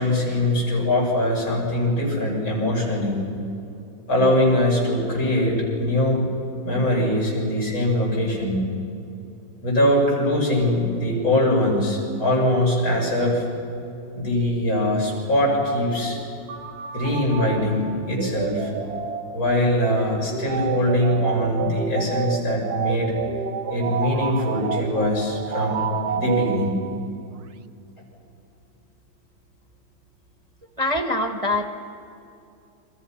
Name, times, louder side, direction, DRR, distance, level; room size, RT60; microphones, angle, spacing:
voice 1, 0.0-3.2 4.1-6.2 6.6-8.6 9.6-13.5 14.1-16.2 16.9-18.7 19.3-23.1 23.7-25.8 26.1-26.7, left 1 dB, 85° left, -3 dB, 7.4 m, -22 dB
sound 1, 16.5-27.2, right 7 dB, 60° right, 1.2 m, -29 dB
voice 2, 30.8-31.7, left 1 dB, 20° right, 5 dB, 1.1 m, -23 dB
30.0 x 25.0 x 5.8 m, 2.7 s
omnidirectional pair, 2.1 m